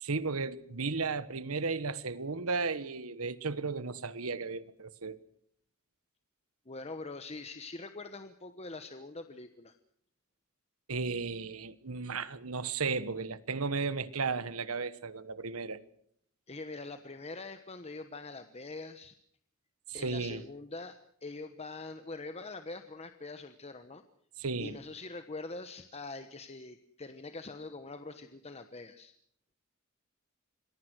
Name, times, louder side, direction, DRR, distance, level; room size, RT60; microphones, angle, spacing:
voice 1, 0.0-5.2 10.9-15.8 19.9-20.4 24.4-24.8, right 4 dB, 85° right, 1.3 m, -34 dB
voice 2, 6.7-9.7 16.5-19.2 19.9-24.0 24.6-29.1, left 3 dB, 30° left, 1.2 m, -44 dB
27.0 x 21.5 x 6.3 m
head